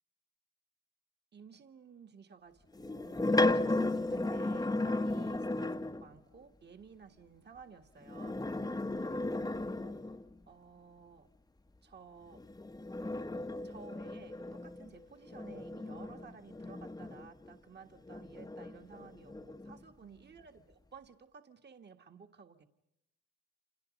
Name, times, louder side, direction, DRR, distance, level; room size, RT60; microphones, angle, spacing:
voice 1, 1.3-8.5 9.8-10.0 10.5-11.3 11.8-12.4 13.6-22.7, right 5 dB, 35° right, 6 dB, 1.8 m, -55 dB
sound 1, 2.7-6.1 8.0-10.4 12.3-17.5 18.1-19.8, left 2 dB, 10° left, 1.0 m, -35 dB
voice 2, 8.6-9.3 20.0-20.4, right 8 dB, 75° right, 3 dB, 2.5 m, -61 dB
29.5 x 27.5 x 5.3 m, 0.86 s
cardioid pair, 90°, 30 cm